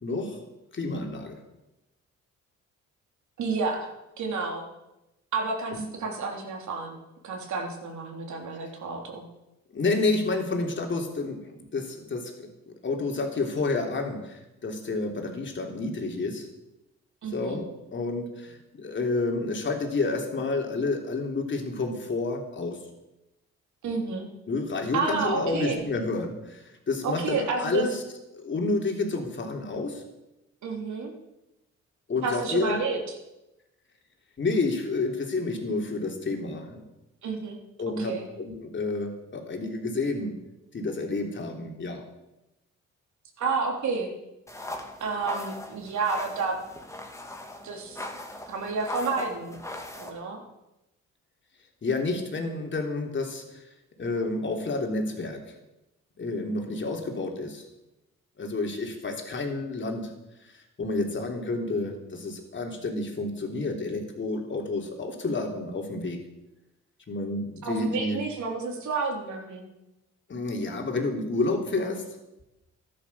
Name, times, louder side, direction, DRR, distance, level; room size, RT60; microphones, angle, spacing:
voice 1, 0.0-0.4 0.7-1.4 5.7-5.8 9.7-11.4 11.7-14.3 14.6-16.5 17.3-22.8 24.5-28.0 28.3-30.0 32.1-32.8 34.4-36.8 37.8-40.3 40.7-42.1 51.8-53.6 54.0-55.4 56.2-57.7 58.4-60.1 60.4-66.2 67.1-68.2 70.3-72.0, left 3 dB, 40° left, 2 dB, 3.3 m, -29 dB
voice 2, 3.4-3.9 4.2-4.6 5.3-7.0 7.2-9.3 17.2-17.6 23.8-24.3 24.9-25.8 27.0-27.9 30.6-31.1 32.2-33.2 37.2-37.6 38.0-38.3 43.4-44.1 45.0-46.6 47.6-48.0 48.5-49.6 50.0-50.4 67.6-69.7, right 4 dB, 70° right, 1 dB, 3.5 m, -30 dB
sound 1, 44.5-50.1, left 1 dB, 10° left, 2.4 m, -39 dB
14.0 x 11.5 x 7.0 m, 0.95 s
cardioid pair, 90°, 30 cm